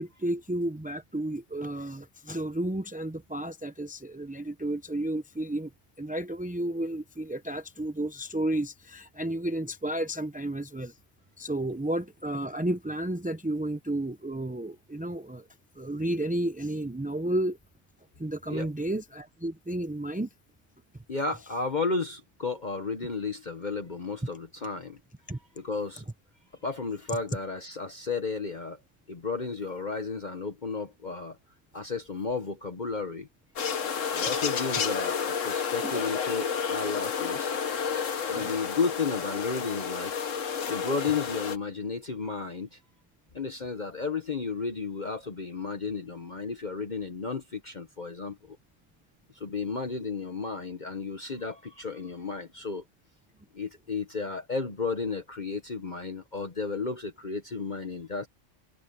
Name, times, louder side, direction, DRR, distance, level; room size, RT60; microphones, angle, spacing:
voice 1, 0.0-5.7 6.0-11.0 11.4-15.5 15.8-17.6 18.2-20.3 25.3-25.4 38.3-38.6, right 1 dB, 10° right, 0.4 m, -32 dB
voice 2, 21.1-25.0 25.6-26.0 26.6-28.8 29.1-31.4 31.7-33.3 34.1-37.5 38.2-40.1 40.7-42.8 43.3-48.6 49.3-52.8 53.5-58.3, left 4 dB, 40° left, 1.2 m, -33 dB
sound 1, 33.6-41.6, left 6 dB, 75° left, 1.5 m, -31 dB
omnidirectional pair, 1.3 m